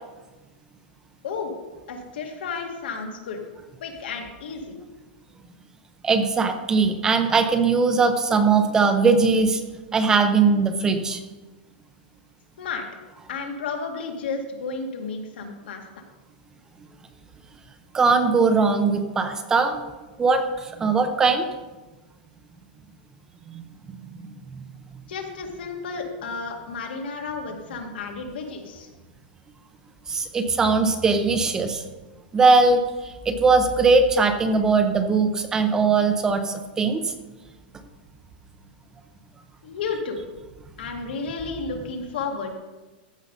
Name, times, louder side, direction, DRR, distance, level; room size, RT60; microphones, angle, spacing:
voice 1, 1.9-3.4 3.8-4.8 12.6-12.9 13.3-15.8 25.1-28.9 39.6-40.2 40.8-42.5, left 4 dB, 75° left, 3 dB, 2.0 m, -32 dB
voice 2, 6.0-9.6 9.9-11.2 17.9-19.8 20.2-21.5 23.5-23.6 24.2-24.3 30.1-31.8 32.3-37.1, right 4 dB, 10° right, 8 dB, 0.5 m, -20 dB
14.5 x 5.4 x 5.3 m, 1.2 s
supercardioid pair, 170°, 5 cm